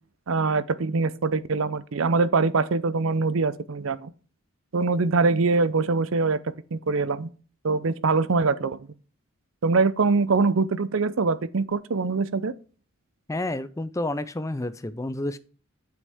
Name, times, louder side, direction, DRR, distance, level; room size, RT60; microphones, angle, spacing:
voice 1, 0.3-4.1 4.7-6.4 6.7-7.3 7.6-8.9 9.6-12.5, right 4 dB, 65° right, 0.6 m, -23 dB
voice 2, 13.3-15.4, left 1 dB, 15° left, 0.4 m, -30 dB
8.0 x 6.5 x 3.5 m
head